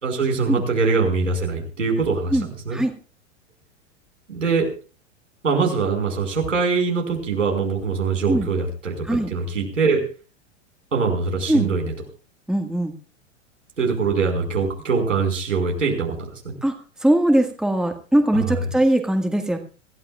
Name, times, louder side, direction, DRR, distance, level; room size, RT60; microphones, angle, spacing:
voice 1, 0.0-2.4 2.6-2.8 4.3-4.7 5.4-10.0 10.9-11.9 13.8-16.5 18.3-18.6, right 4 dB, 90° right, 1 dB, 5.1 m, -23 dB
voice 2, 12.5-12.9 16.6-16.7 17.0-19.6, right 1 dB, ahead, 4 dB, 1.7 m, -20 dB
25.5 x 13.5 x 2.4 m, 0.35 s
hypercardioid pair, 100°, 37 cm